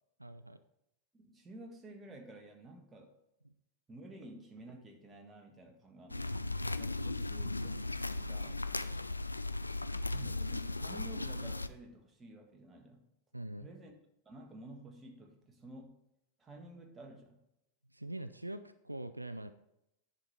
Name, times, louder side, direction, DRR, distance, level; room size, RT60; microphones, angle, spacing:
voice 1, 0.2-0.6 3.4-3.5 13.3-13.7 17.9-19.5, right 1 dB, 85° right, 11 dB, 0.3 m, -43 dB
voice 2, 1.1-3.1 3.9-6.3 6.8-7.9 8.1-8.7 10.1-13.1 13.6-13.9 14.2-16.0 16.4-17.4, right 2 dB, 15° right, 2 dB, 1.7 m, -52 dB
sound 1, 6.1-11.7, left 2 dB, 85° left, 0.4 m, -37 dB
10.5 x 5.1 x 4.3 m, 0.84 s
figure-of-eight pair, 90°, 0 cm